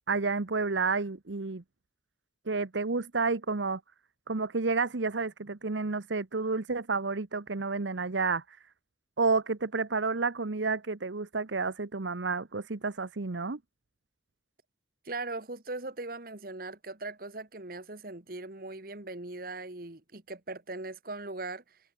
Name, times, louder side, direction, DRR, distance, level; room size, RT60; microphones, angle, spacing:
voice 1, 0.1-1.6 2.5-3.8 4.3-8.6 9.2-13.6, right 4 dB, 80° right, 1.0 m, -30 dB
voice 2, 15.0-21.8, right 2 dB, 50° right, 1.6 m, -39 dB
head